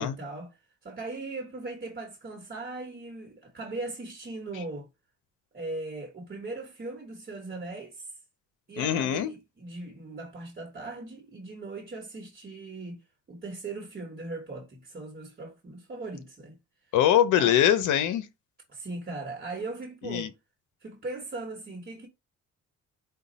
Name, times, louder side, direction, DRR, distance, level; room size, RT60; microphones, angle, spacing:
voice 1, 0.0-4.9 5.5-8.1 8.7-16.6 17.3-17.6 18.7-20.3 20.8-22.1, right 2 dB, 30° right, 1.1 m, -39 dB
voice 2, 8.8-9.3 16.9-18.3 20.0-20.3, left 10 dB, 85° left, 0.7 m, -23 dB
5.1 x 2.3 x 4.0 m
cardioid pair, 90°, 30 cm